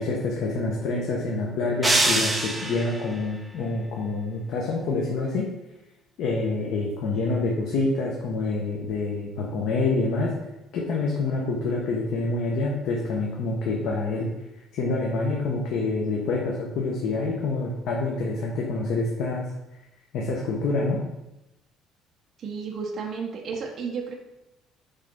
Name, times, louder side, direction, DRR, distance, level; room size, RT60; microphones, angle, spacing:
voice 1, 0.0-5.5 6.2-10.3 10.7-14.3 14.7-19.5 20.1-21.0, left 3 dB, 55° left, -2 dB, 1.1 m, -27 dB
sound 1, 1.8-3.1, right 2 dB, 10° right, 0.7 m, -23 dB
voice 2, 22.4-24.1, right 5 dB, 30° right, -1 dB, 0.9 m, -32 dB
5.6 x 4.9 x 5.3 m, 0.93 s
cardioid pair, 180°, 0 cm